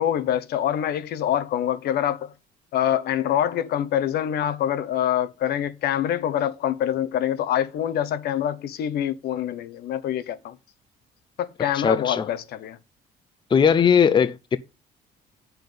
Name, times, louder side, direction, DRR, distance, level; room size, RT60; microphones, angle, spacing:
voice 1, 0.0-2.3 2.7-10.6 11.4-12.8, left 10 dB, 70° left, 1.0 m, -25 dB
voice 2, 11.8-12.3 13.5-14.6, left 7 dB, 30° left, 0.6 m, -19 dB
9.0 x 5.9 x 5.3 m
cardioid pair, 110°, 17 cm